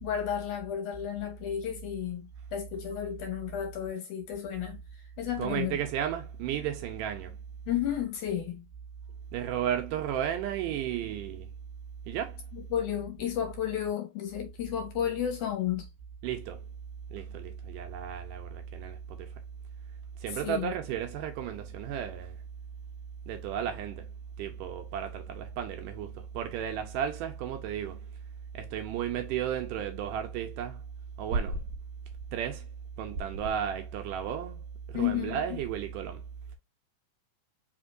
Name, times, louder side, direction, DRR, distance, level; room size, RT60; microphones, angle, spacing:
voice 1, 0.0-4.8 5.2-5.8 7.7-8.6 12.5-15.9 20.3-20.7 34.9-35.4, left 10 dB, 70° left, 2.1 m, -32 dB
voice 2, 5.4-7.4 9.3-11.5 12.1-12.4 16.2-16.6 17.1-19.3 20.2-22.4 23.3-24.1 24.4-28.1 28.5-30.8 31.2-31.7 32.3-32.7 33.0-36.2, right 9 dB, 80° right, 2.0 m, -33 dB
5.1 x 3.5 x 2.4 m
omnidirectional pair, 4.2 m